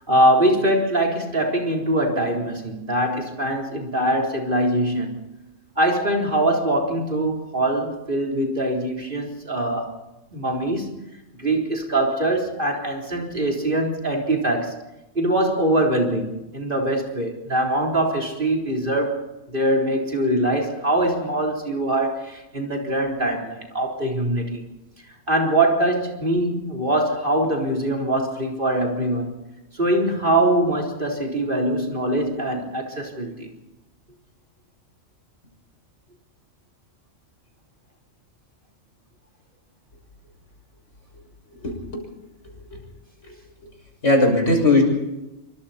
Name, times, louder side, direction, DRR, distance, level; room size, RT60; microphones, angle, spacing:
voice 1, 0.1-5.2 5.8-9.9 10.3-10.9 11.4-14.8 15.1-19.2 19.5-24.6 25.3-29.4 29.7-33.5, right 1 dB, 40° right, 0 dB, 4.2 m, -23 dB
voice 2, 41.6-42.0 44.0-44.8, left 2 dB, 65° left, 2 dB, 6.9 m, -18 dB
27.0 x 25.0 x 4.4 m, 0.99 s
omnidirectional pair, 1.3 m